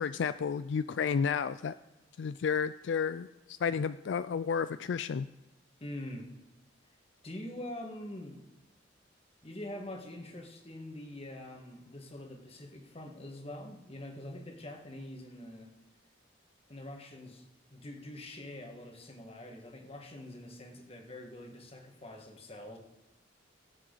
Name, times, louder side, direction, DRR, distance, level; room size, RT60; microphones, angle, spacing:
voice 1, 0.0-1.7 2.2-5.3, left 6 dB, 70° left, 13 dB, 0.4 m, -32 dB
voice 2, 5.8-6.3 7.2-8.5 9.4-15.7 16.7-17.4 17.7-22.8, left 1 dB, 30° left, 3 dB, 1.8 m, -44 dB
23.0 x 7.7 x 4.0 m, 1.1 s
head